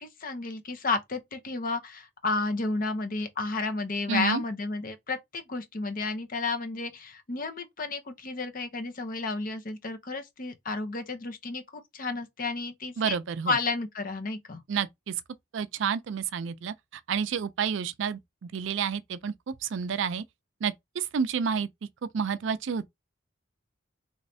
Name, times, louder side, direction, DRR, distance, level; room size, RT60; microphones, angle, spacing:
voice 1, 0.0-13.2 13.5-14.6, left 3 dB, 45° left, 0.7 m, -32 dB
voice 2, 4.1-4.4 13.0-13.6 14.7-15.1 15.5-20.2 20.6-21.7 22.1-22.9, right 6 dB, 65° right, 0.4 m, -30 dB
3.1 x 3.1 x 2.7 m
head